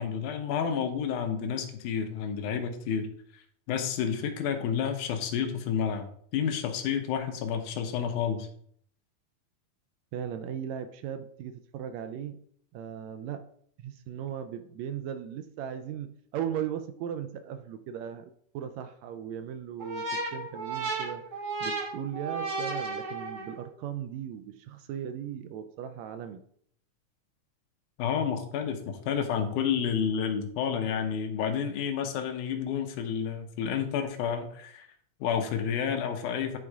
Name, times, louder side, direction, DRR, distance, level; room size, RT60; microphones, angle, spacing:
voice 1, 0.0-3.1 3.7-8.5 28.0-34.9 35.2-36.6, left 7 dB, 80° left, 6 dB, 2.4 m, -30 dB
voice 2, 10.1-12.4 12.7-13.4 13.8-21.3 21.6-26.4, right 9 dB, 80° right, 9 dB, 1.6 m, -37 dB
sound 1, 19.8-23.7, right 3 dB, 55° right, 0.7 m, -34 dB
10.0 x 3.7 x 4.7 m, 0.62 s
omnidirectional pair, 3.6 m